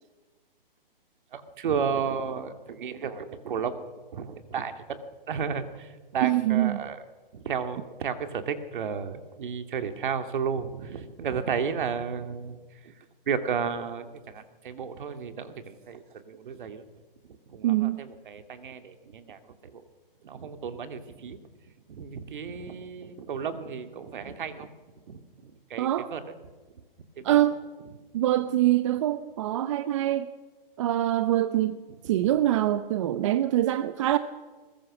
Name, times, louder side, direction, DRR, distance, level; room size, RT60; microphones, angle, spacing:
voice 1, 1.3-3.7 4.1-5.0 5.3-7.0 7.3-12.6 13.3-16.8 17.5-19.4 19.7-19.8 20.2-21.4 21.9-24.7 25.1-25.2 25.7-26.2 27.2-27.4, right 6 dB, 60° right, 2.4 m, -33 dB
voice 2, 6.2-6.8 17.6-18.0 25.8-26.1 27.2-27.6 28.1-30.3 30.8-31.8 32.1-34.2, right 13 dB, 30° right, 0.7 m, -24 dB
21.5 x 20.5 x 6.1 m
hypercardioid pair, 150°, 29 cm